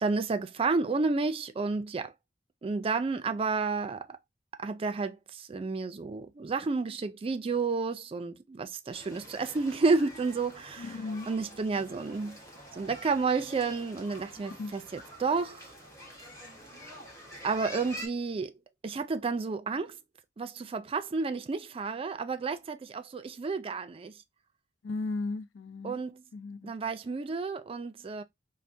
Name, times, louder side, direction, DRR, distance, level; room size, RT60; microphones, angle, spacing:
voice 1, 0.0-2.1 2.6-4.1 4.6-12.4 12.7-15.7 17.4-18.5 18.8-20.0 20.4-24.1 25.8-26.2 26.6-28.2, right 4 dB, 30° right, 0.3 m, -31 dB
sound 1, 8.9-18.1, equal, 15° left, 1.2 m, -47 dB
voice 2, 10.8-11.3 14.6-14.7 24.8-26.0 26.3-26.7, left 3 dB, 90° left, 0.5 m, -35 dB
4.3 x 2.1 x 2.6 m
head